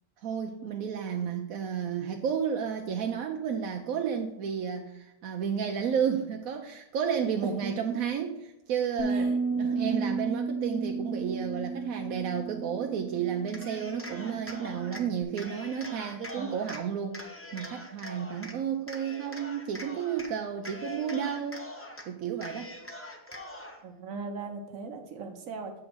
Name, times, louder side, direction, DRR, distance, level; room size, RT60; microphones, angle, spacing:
voice 1, 0.2-21.7 22.1-22.7, right 7 dB, 90° right, 3 dB, 1.1 m, -32 dB
voice 2, 7.4-7.7 9.1-9.4 9.6-10.1 16.3-16.7 23.8-25.7, right 4 dB, 70° right, 4 dB, 1.4 m, -38 dB
Bass guitar, 9.0-15.2, right 4 dB, 50° left, 1.0 m, -33 dB
Cheering, 13.5-15.0 15.4-16.8 17.1-18.5 18.9-20.3 20.6-22.0 22.4-23.8, left 1 dB, 15° left, 0.6 m, -43 dB
7.9 x 3.7 x 6.0 m, 0.88 s
omnidirectional pair, 1.5 m